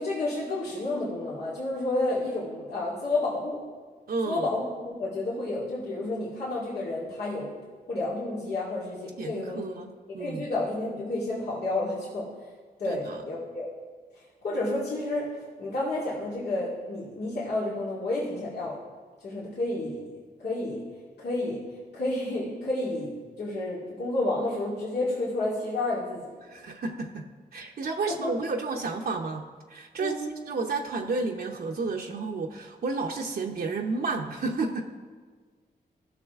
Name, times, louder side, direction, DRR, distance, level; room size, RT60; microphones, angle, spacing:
voice 1, 0.0-3.6 4.2-7.5 7.9-9.8 10.2-12.3 12.8-13.7 14.1-15.3 15.6-18.8 19.2-20.0 20.4-20.8 21.2-21.6 21.9-23.1 23.4-26.3 28.1-28.3 30.0-30.3, left 2 dB, 85° left, -8 dB, 2.1 m, -30 dB
voice 2, 4.1-4.5 9.2-10.5 12.9-13.2 26.4-29.4 29.7-34.8, right 3 dB, 70° right, 1 dB, 0.8 m, -31 dB
15.0 x 6.2 x 3.6 m, 1.5 s
cardioid pair, 80°, 17 cm